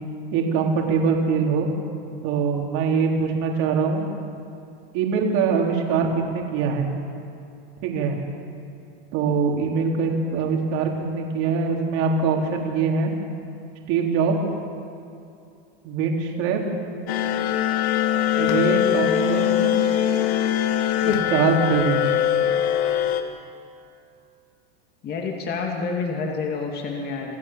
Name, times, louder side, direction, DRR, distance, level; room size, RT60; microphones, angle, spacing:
voice 1, 0.3-1.7 2.2-4.1 4.9-6.9 7.8-8.2 9.1-13.1 13.9-14.4 15.8-16.6 18.4-19.8 21.0-22.1, right 5 dB, 55° right, 0 dB, 4.1 m, -23 dB
sound 1, 17.1-23.2, left 10 dB, 80° left, 2.0 m, -22 dB
voice 2, 25.0-27.4, left 4 dB, 30° left, 0 dB, 2.5 m, -28 dB
28.0 x 15.0 x 7.6 m, 2.6 s
supercardioid pair, 135°, 31 cm